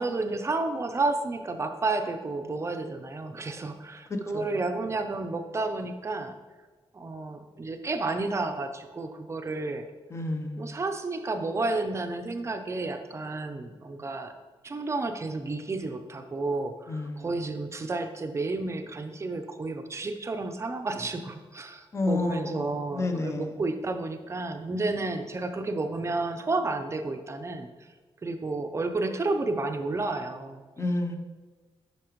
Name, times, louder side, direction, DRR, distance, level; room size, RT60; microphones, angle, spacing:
voice 1, 0.0-6.3 6.9-9.8 10.6-14.3 14.6-27.7 28.2-30.6, right 3 dB, 30° right, 6 dB, 0.6 m, -31 dB
voice 2, 4.1-4.5 10.1-10.8 16.9-17.3 21.9-23.5 30.8-31.2, left 2 dB, 30° left, 5 dB, 0.7 m, -30 dB
8.5 x 5.8 x 3.0 m, 1.4 s
wide cardioid pair, 145°, 10 cm